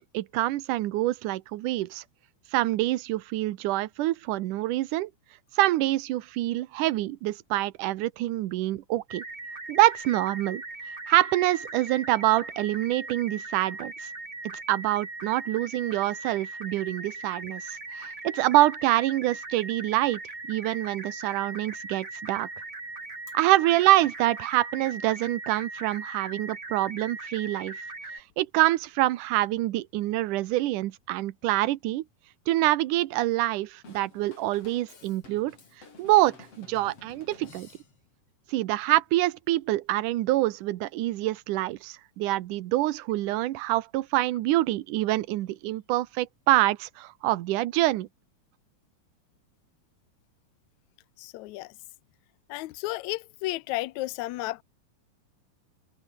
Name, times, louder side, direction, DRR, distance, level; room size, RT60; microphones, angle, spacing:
voice 1, 0.0-2.0 2.5-5.1 5.6-9.2 9.7-10.6 11.1-13.9 14.7-20.2 20.5-22.5 23.3-27.8 28.4-32.0 32.5-35.6 36.0-37.7 38.5-48.1, right 16 dB, 75° right, 2.4 m, -26 dB
sound 1, 9.1-28.2, right 3 dB, 45° right, 8.8 m, -40 dB
Drum kit / Drum, 33.8-38.2, left 4 dB, 45° left, 5.3 m, -52 dB
voice 2, 51.2-51.7 52.5-54.6, left 18 dB, 75° left, 1.8 m, -33 dB
omnidirectional pair, 3.8 m